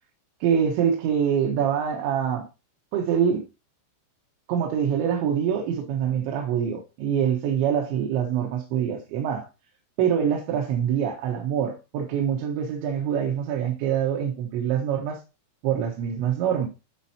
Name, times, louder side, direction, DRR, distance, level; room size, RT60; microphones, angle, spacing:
voice 1, 0.4-2.5 2.9-3.4 4.5-9.5 10.0-15.2 15.6-16.7, right 8 dB, 85° right, 3.7 m, -25 dB
13.0 x 4.6 x 2.9 m
omnidirectional pair, 5.1 m